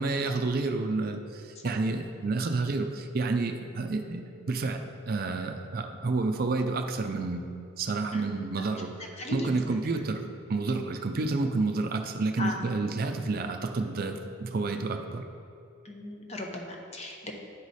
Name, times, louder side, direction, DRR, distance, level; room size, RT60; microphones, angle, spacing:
voice 1, 0.0-7.4 7.8-8.9 9.3-10.2 10.5-15.2, right 3 dB, 45° right, 6 dB, 0.4 m, -29 dB
voice 2, 9.2-9.6 12.4-12.6 15.8-17.3, left 2 dB, 30° left, 1 dB, 0.8 m, -37 dB
9.6 x 4.8 x 4.1 m, 2.5 s
head